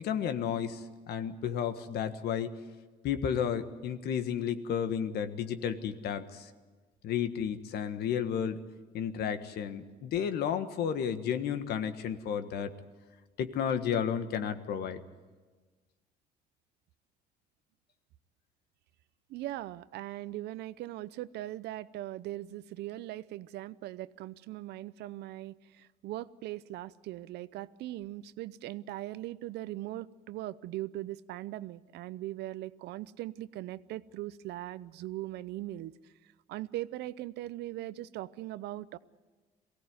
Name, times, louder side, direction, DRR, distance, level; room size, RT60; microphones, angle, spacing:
voice 1, 0.0-2.6 3.0-6.5 7.0-8.6 8.9-12.7 13.4-15.0, left 8 dB, 70° left, 10 dB, 1.5 m, -32 dB
voice 2, 19.3-36.1 36.5-39.0, right 15 dB, 80° right, 16 dB, 0.7 m, -40 dB
23.0 x 17.0 x 9.5 m, 1.3 s
cardioid pair, 110°, 17 cm